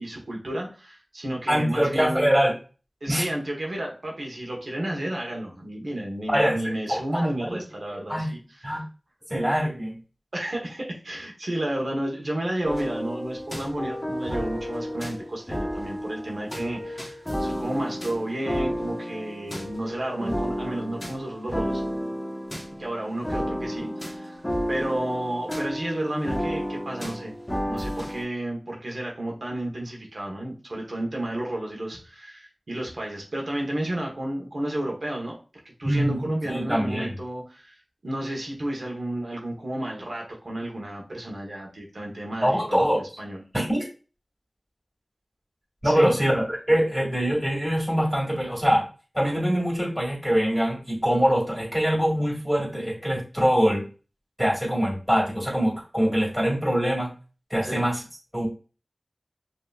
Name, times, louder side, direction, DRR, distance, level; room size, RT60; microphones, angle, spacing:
voice 1, 0.0-2.3 3.0-8.7 10.3-21.8 22.8-24.4 24.7-27.3 27.7-35.4 35.6-43.4 45.8-46.1 57.6-57.8, right 1 dB, 75° right, -1 dB, 1.1 m, -32 dB
voice 2, 1.5-2.5 3.1-3.3 6.3-7.6 8.1-8.3 8.6-8.9 9.3-10.0 35.8-37.1 42.4-43.0 43.5-43.8 45.8-48.8 49.1-53.9 54.4-57.1 57.5-58.0 58.3-58.5, equal, 10° right, -3 dB, 2.3 m, -23 dB
sound 1, 12.6-28.2, equal, 15° left, 1.3 m, -32 dB
5.4 x 2.9 x 2.4 m, 0.35 s
wide cardioid pair, 45°, 0 cm